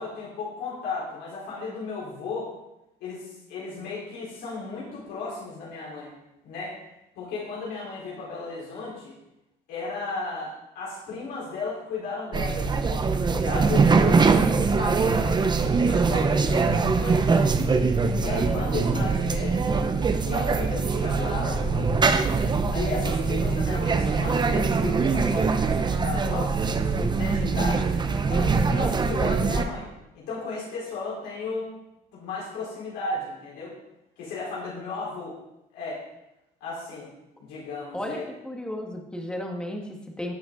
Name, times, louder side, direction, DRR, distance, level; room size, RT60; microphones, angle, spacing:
voice 1, 0.0-2.5 3.0-6.1 6.4-6.8 7.1-9.2 9.7-17.5 18.2-19.7 20.2-22.3 22.7-26.6 27.1-29.9 30.1-31.7 32.1-33.7 34.2-35.4 35.7-36.0 36.6-37.1 37.4-38.2, left 3 dB, 85° left, -6 dB, 4.6 m, -35 dB
sound 1, 12.3-29.6, right 4 dB, 25° right, 0.8 m, -23 dB
voice 2, 37.9-40.3, left 1 dB, 5° left, 1 dB, 1.9 m, -34 dB
17.0 x 5.9 x 4.0 m, 0.91 s
cardioid pair, 110°, 17 cm